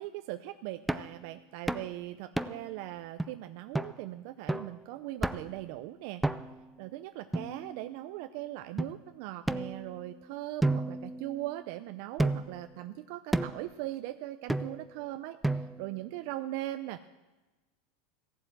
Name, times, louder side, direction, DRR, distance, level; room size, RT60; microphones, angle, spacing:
voice 1, 0.0-6.2 6.8-17.1, right 15 dB, 65° right, 10 dB, 0.5 m, -40 dB
sound 1, 0.9-1.2 1.7-1.9 2.4-2.7 3.2-3.3 3.7-4.0 4.5-4.8 5.2-5.6 6.2-6.7 7.3-8.0 8.8-8.9 9.5-10.2 10.6-11.7 12.2-12.6 13.3-13.7 14.5-14.9 15.4-15.9, right 2 dB, 5° right, 0.5 m, -32 dB
15.5 x 7.6 x 7.8 m, 1.2 s
supercardioid pair, 110°, 0 cm